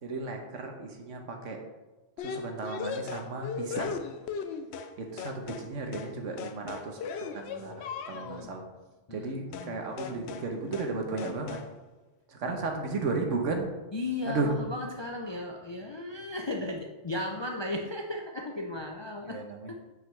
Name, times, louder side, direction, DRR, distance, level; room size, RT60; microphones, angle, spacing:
voice 1, 0.0-1.6 2.2-4.0 5.0-8.6 9.1-11.6 12.3-13.7 14.3-14.5 19.3-19.7, right 3 dB, 80° right, 3 dB, 1.3 m, -34 dB
sound 1, 2.2-4.9 5.2-5.7 5.9-6.1 6.4-8.5 9.5-9.7 10.0-10.5 10.7-10.9 11.2-11.7, left 6 dB, 65° left, 0.8 m, -37 dB
voice 2, 8.1-8.5 9.1-10.3 12.4-12.6 13.9-19.4 19.7-19.8, left 2 dB, 40° left, 1 dB, 0.3 m, -36 dB
7.9 x 5.6 x 3.2 m, 1.2 s
omnidirectional pair, 1.3 m